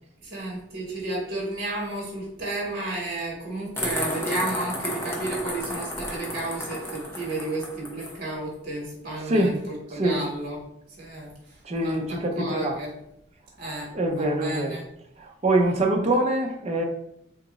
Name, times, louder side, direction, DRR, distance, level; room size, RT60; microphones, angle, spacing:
voice 1, 0.2-10.6 11.0-12.9 13.6-14.8 15.7-16.2, right 2 dB, 55° right, -2 dB, 1.2 m, -33 dB
sound 1, 3.8-8.2, left 1 dB, 15° left, 0.7 m, -32 dB
voice 2, 11.6-12.8 13.9-14.8 15.2-16.8, right 1 dB, 35° right, 2 dB, 0.6 m, -24 dB
2.9 x 2.4 x 4.0 m, 0.76 s
head